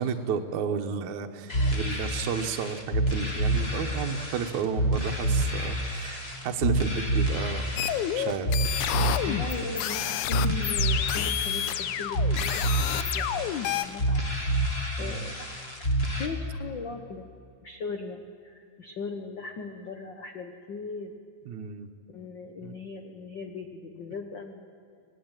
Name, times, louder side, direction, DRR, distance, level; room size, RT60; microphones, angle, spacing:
voice 1, 0.0-7.6 8.1-8.5 15.0-15.3 21.5-21.9 22.6-22.8, right 7 dB, 70° right, 5 dB, 2.5 m, -32 dB
sound 1, 1.5-16.3, right 1 dB, 20° left, 2.6 m, -28 dB
sound 2, 7.8-13.9, left 12 dB, 80° left, 2.2 m, -29 dB
voice 2, 9.2-14.6 15.0-15.5 16.2-17.3 17.6-21.1 22.1-25.0, left 4 dB, 55° left, 4 dB, 1.3 m, -39 dB
25.5 x 19.0 x 9.0 m, 2.4 s
omnidirectional pair, 3.5 m